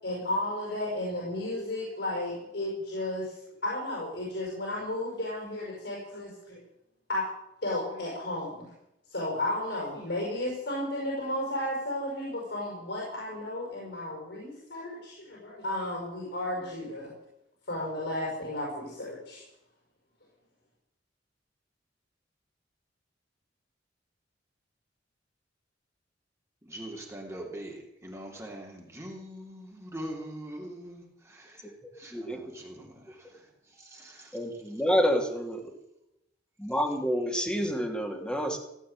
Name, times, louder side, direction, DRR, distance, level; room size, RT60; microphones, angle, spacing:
voice 1, 0.0-3.4 3.6-6.6 7.1-7.3 7.6-8.6 9.1-17.1 17.7-19.4, left 1 dB, 70° left, -4 dB, 5.8 m, -33 dB
voice 2, 26.6-33.5 33.7-34.4, right 1 dB, 15° right, -1 dB, 3.0 m, -43 dB
voice 3, 34.3-35.7 36.6-38.6, equal, 5° left, 1 dB, 2.5 m, -28 dB
16.5 x 8.4 x 8.9 m, 0.83 s
head